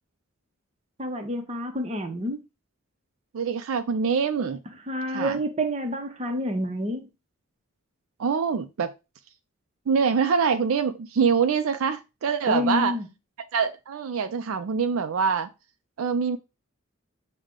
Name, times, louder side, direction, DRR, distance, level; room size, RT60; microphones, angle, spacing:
voice 1, 1.0-2.4 4.9-7.1 12.5-13.1, equal, 30° right, 0.7 m, -28 dB
voice 2, 3.3-4.6 5.1-5.4 8.2-8.9 9.9-13.0 13.5-15.5 16.0-16.4, right 6 dB, 75° right, 0.4 m, -24 dB
6.3 x 2.2 x 3.6 m
head